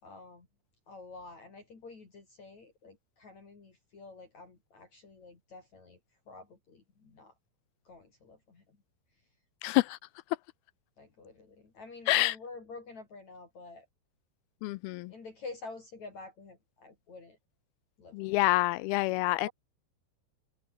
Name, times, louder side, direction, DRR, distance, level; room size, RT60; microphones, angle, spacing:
voice 1, 0.0-0.5 0.9-6.0 6.3-7.3 7.9-8.6 11.0-13.9 15.1-17.4 18.0-18.4 19.4-19.5, left 3 dB, 45° left, 5.5 m, -49 dB
voice 2, 9.6-10.0 12.1-12.4 14.6-15.1 18.1-19.5, left 19 dB, 85° left, 2.3 m, -27 dB
omnidirectional pair, 4.7 m